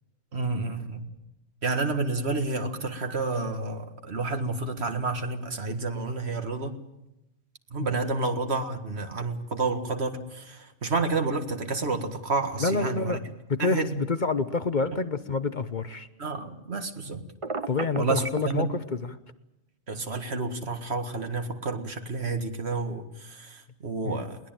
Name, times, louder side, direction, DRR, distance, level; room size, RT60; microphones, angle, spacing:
voice 1, 0.3-1.1 1.6-6.8 7.7-13.2 13.6-14.0 16.2-17.2 18.0-18.7 19.9-24.4, right 3 dB, 65° right, 7 dB, 2.0 m, -30 dB
voice 2, 12.6-13.2 13.5-16.1 17.7-19.2 24.0-24.2, left 4 dB, 45° left, 12 dB, 1.0 m, -28 dB
Telephone, 17.4-18.5, right 3 dB, 30° right, 1.0 m, -32 dB
22.0 x 19.0 x 9.0 m, 0.90 s
omnidirectional pair, 1.2 m